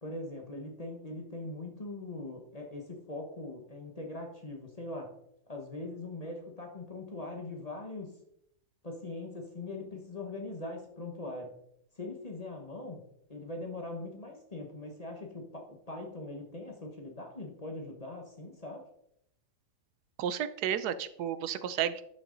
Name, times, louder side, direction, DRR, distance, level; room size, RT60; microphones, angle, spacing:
voice 1, 0.0-5.1 5.5-8.1 8.8-11.5 12.0-13.0 13.3-18.8, left 2 dB, 25° left, 2 dB, 1.1 m, -41 dB
voice 2, 20.2-22.1, right 9 dB, 80° right, 14 dB, 1.1 m, -32 dB
11.5 x 6.0 x 3.9 m, 0.75 s
omnidirectional pair, 1.7 m